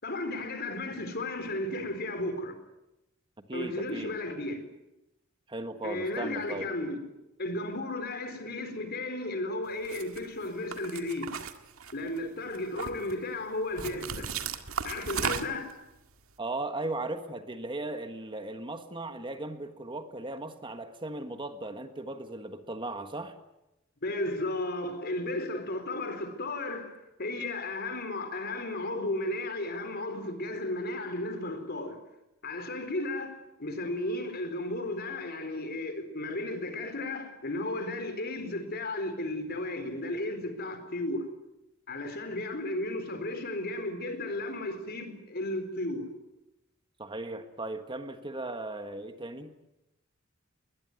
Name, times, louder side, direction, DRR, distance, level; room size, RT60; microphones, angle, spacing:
voice 1, 0.0-2.6 3.5-4.7 5.8-7.0 7.4-11.3 11.9-14.3 14.8-15.8 24.0-32.0 32.4-41.2 41.9-46.1, left 2 dB, 50° left, 4.2 m, -34 dB
voice 2, 3.5-4.1 5.5-6.7 16.4-23.3 47.0-49.5, right 2 dB, 25° right, 1.5 m, -37 dB
sound 1, 9.8-10.2 10.7-12.2 12.5-13.1 13.8-15.7, right 6 dB, 85° right, 1.9 m, -35 dB
21.5 x 21.0 x 9.6 m
head